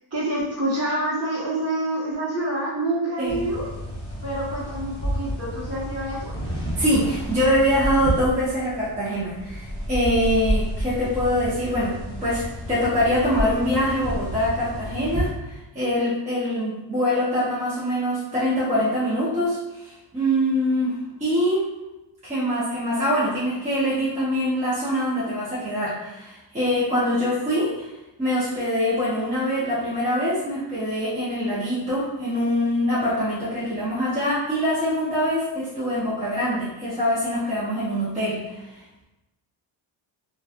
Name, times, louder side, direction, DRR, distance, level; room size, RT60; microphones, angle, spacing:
voice 1, 0.1-3.7 4.2-6.3, right 1 dB, 30° right, -7 dB, 1.0 m, -27 dB
sound 1, 3.2-15.3, equal, 10° left, 0.9 m, -30 dB
voice 2, 6.8-11.9 12.2-20.9 21.2-21.7 22.2-27.9 28.2-38.8, equal, 15° right, -10 dB, 0.6 m, -24 dB
2.8 x 2.3 x 2.4 m, 1.0 s
cardioid pair, 145°, 48 cm